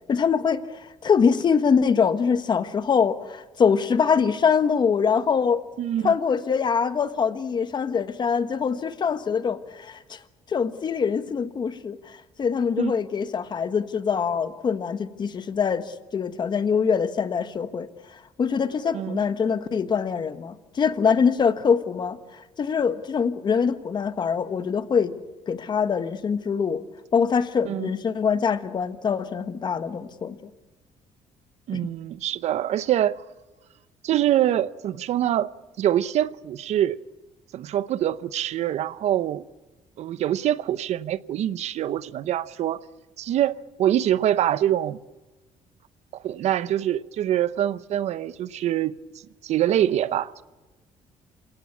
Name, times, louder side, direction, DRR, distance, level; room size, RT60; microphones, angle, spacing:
voice 1, 0.1-5.6 6.0-25.2 25.5-26.8 27.1-30.5 31.7-31.8, left 6 dB, 35° left, 1.4 m, -24 dB
voice 2, 5.8-6.1 12.8-12.9 18.9-19.2 27.6-27.9 31.7-33.2 34.0-35.5 35.8-37.0 37.5-39.4 40.0-42.8 43.2-45.0 46.2-49.0 49.4-50.4, right 11 dB, 65° right, 0.8 m, -24 dB
28.0 x 18.0 x 8.4 m
cardioid pair, 125°, 12 cm